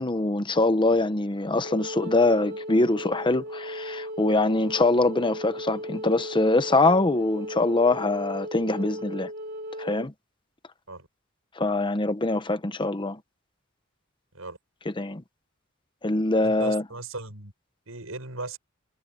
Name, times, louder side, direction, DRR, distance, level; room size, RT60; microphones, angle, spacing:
voice 1, 0.0-9.3 9.8-10.1 11.6-13.2 14.9-15.2 16.0-16.8, left 2 dB, 25° left, 1.0 m, -23 dB
Wind instrument woodwind instrument, 1.6-10.1, equal, 50° right, 3.7 m, -36 dB
voice 2, 16.4-17.5 17.9-18.6, right 3 dB, 85° right, 7.2 m, -37 dB
head